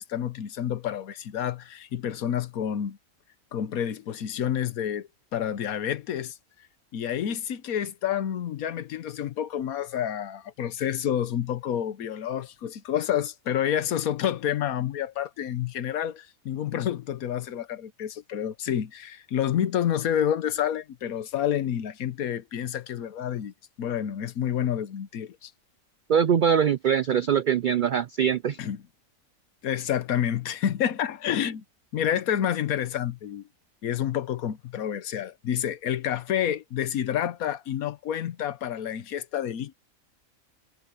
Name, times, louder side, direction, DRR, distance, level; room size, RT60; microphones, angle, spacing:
voice 1, 0.0-3.0 3.5-6.4 6.9-25.5 28.6-28.8 29.6-31.6 31.9-33.4 33.8-39.8, left 10 dB, 90° left, 1.4 m, -29 dB
voice 2, 26.1-28.6, right 8 dB, 85° right, 0.4 m, -22 dB
omnidirectional pair, 1.4 m